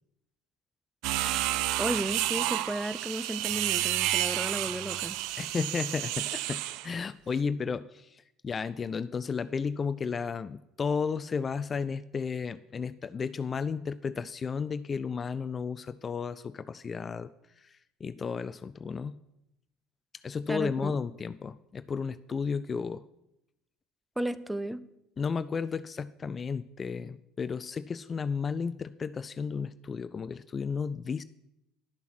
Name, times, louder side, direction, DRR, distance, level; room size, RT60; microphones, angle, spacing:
sound 1, 1.0-6.9, right 15 dB, 65° right, 0.5 m, -30 dB
voice 1, 1.1-1.5 1.8-5.2 20.5-21.0 24.2-24.8, right 1 dB, 5° right, 15 dB, 0.6 m, -34 dB
voice 2, 5.4-17.3 17.6-19.1 20.2-23.0 25.2-31.2, left 5 dB, 35° left, 15 dB, 0.4 m, -33 dB
11.0 x 7.0 x 6.0 m, 0.85 s
hypercardioid pair, 65°, 0 cm